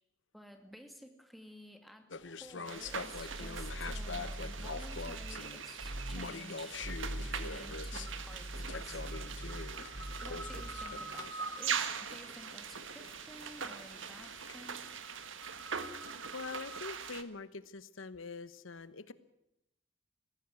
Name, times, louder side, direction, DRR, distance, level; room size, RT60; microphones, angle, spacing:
voice 1, 0.3-6.7 7.2-9.0 10.2-14.8, equal, ahead, 5 dB, 2.1 m, -53 dB
sound 1, 2.1-15.0, left 4 dB, 65° left, 1.0 m, -46 dB
sound 2, 2.6-17.2, right 6 dB, 75° right, 1.6 m, -42 dB
sound 3, 2.8-5.4 5.8-6.3 6.7-11.0, right 1 dB, 30° right, 1.2 m, -43 dB
voice 2, 16.3-19.1, left 4 dB, 85° left, 14 dB, 1.0 m, -44 dB
19.5 x 15.5 x 9.6 m, 0.87 s
head